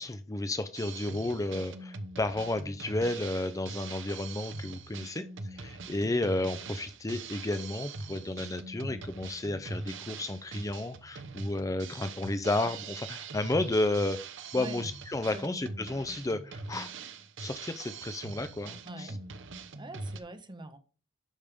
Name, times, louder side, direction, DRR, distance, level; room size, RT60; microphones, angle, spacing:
voice 1, 0.0-14.2 14.5-16.9 17.4-19.2, left 2 dB, 15° left, 0.5 m, -32 dB
Drum kit, 0.7-20.2, right 3 dB, 65° right, 0.9 m, -42 dB
voice 2, 14.5-14.8 15.3-15.6 18.8-19.2 19.7-20.8, right 2 dB, 25° right, 1.0 m, -43 dB
11.5 x 5.2 x 3.5 m
head